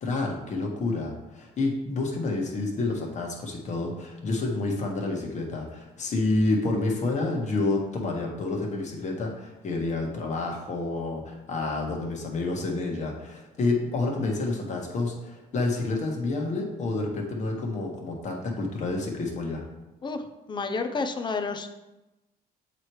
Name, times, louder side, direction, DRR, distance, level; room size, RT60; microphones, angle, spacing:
voice 1, 0.0-19.6, left 2 dB, 45° left, 0 dB, 1.4 m, -29 dB
voice 2, 20.0-21.7, left 4 dB, 25° left, 7 dB, 0.6 m, -30 dB
7.5 x 3.1 x 4.7 m, 1.0 s
cardioid pair, 110°, 17 cm